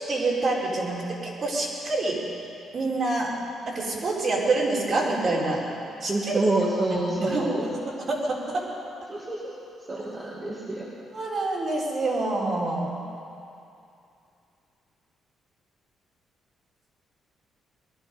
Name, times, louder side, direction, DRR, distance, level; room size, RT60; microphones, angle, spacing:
voice 1, 0.1-1.0 1.4-2.2 2.7-3.3 3.7-5.6 6.0-6.4 6.9-7.8 8.1-8.6 11.1-12.9, right 2 dB, 50° right, -4 dB, 4.0 m, -26 dB
voice 2, 6.1-7.7 9.1-9.5 9.9-10.9, right 2 dB, 30° right, -5 dB, 2.1 m, -27 dB
19.5 x 11.5 x 5.3 m, 2.6 s
cardioid pair, 90°, 0 cm